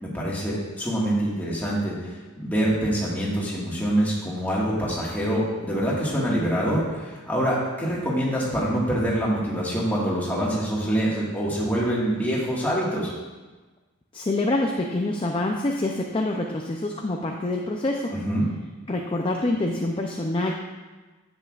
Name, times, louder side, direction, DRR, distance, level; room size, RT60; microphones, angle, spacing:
voice 1, 0.0-13.1 18.1-18.5, right 1 dB, 10° left, -6 dB, 1.6 m, -25 dB
voice 2, 14.1-18.1 18.9-20.5, left 2 dB, 25° left, 1 dB, 0.4 m, -26 dB
10.0 x 7.9 x 2.4 m, 1.3 s
head